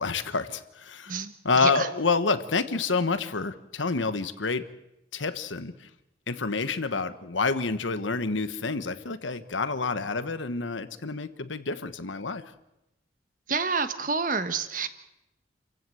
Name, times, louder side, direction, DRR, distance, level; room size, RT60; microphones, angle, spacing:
voice 1, 0.0-4.6 5.1-5.9 6.3-12.4, left 4 dB, 90° left, 12 dB, 1.3 m, -28 dB
voice 2, 13.5-14.9, right 4 dB, 45° right, 10 dB, 1.4 m, -28 dB
28.5 x 15.5 x 7.9 m, 0.91 s
head